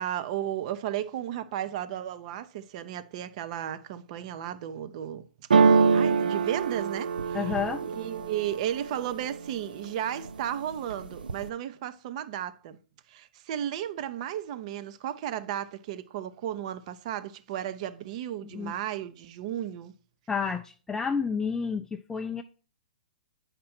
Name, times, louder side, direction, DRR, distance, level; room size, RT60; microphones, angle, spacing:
voice 1, 0.0-5.3 5.6-7.6 7.8-12.8 13.1-19.9, right 11 dB, 50° right, 0.7 m, -34 dB
sound 1, 5.5-9.4 9.8-10.4 10.7-11.5, right 5 dB, 85° right, 0.5 m, -24 dB
voice 2, 7.3-7.8 18.5-18.7 20.3-22.4, left 6 dB, 10° left, 0.4 m, -30 dB
8.6 x 5.2 x 4.3 m
hypercardioid pair, 125°, 5 cm